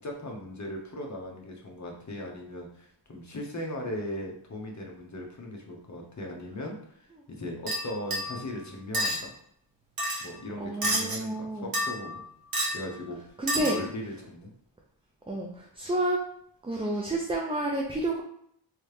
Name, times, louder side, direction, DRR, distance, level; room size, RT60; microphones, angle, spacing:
voice 1, 0.0-9.4 10.2-12.2 12.7-13.2 13.5-14.5, left 1 dB, 35° left, 0 dB, 0.9 m, -38 dB
sound 1, 7.7-8.4 8.9-9.2 10.0-10.3 10.8-11.2 11.7-12.2 12.5-12.8 13.5-13.9, right 1 dB, 50° right, 1.1 m, -29 dB
voice 2, 10.6-11.7 13.4-13.8 15.3-16.2 16.6-18.2, right 1 dB, 15° right, -1 dB, 0.3 m, -30 dB
3.1 x 2.8 x 3.2 m, 0.69 s
wide cardioid pair, 110°, 47 cm